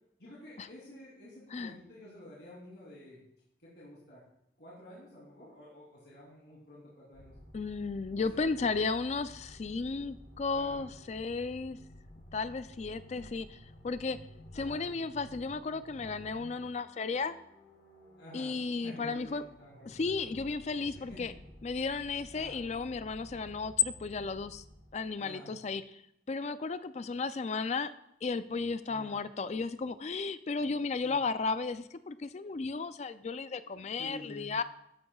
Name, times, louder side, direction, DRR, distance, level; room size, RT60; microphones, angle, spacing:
voice 1, 0.2-3.2 3.6-4.2 4.6-7.3 8.2-8.7 10.5-10.8 13.1-13.3 14.5-14.9 18.2-18.5 18.8-19.9 20.9-21.3 22.3-22.7 25.2-25.5 28.8-29.2 31.0-31.2 33.4-34.6, left 1 dB, 65° left, -7 dB, 3.1 m, -50 dB
sound 1, 7.1-25.2, equal, 90° left, 3.9 m, -53 dB
voice 2, 7.5-11.8 12.3-13.5 13.8-14.2 14.5-17.4 18.3-19.4 19.9-21.3 21.6-24.6 24.9-26.0 26.3-27.9 28.2-34.6, left 4 dB, 40° left, 13 dB, 0.4 m, -34 dB
14.0 x 10.5 x 2.3 m, 0.79 s
head